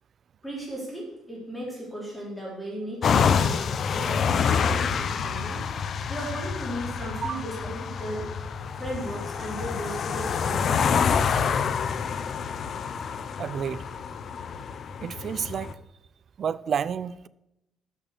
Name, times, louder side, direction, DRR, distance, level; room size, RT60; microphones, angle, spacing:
voice 1, 0.4-3.7 3.9-5.7 6.1-8.3 8.8-11.2 11.4-11.6, right 1 dB, ahead, 3.9 m, -36 dB
sound 1, 3.0-15.7, left 6 dB, 45° left, 0.6 m, -27 dB
voice 2, 13.4-13.8 15.0-15.7 16.4-17.3, right 7 dB, 45° right, 0.3 m, -30 dB
13.0 x 5.9 x 6.8 m
cardioid pair, 145°, 0 cm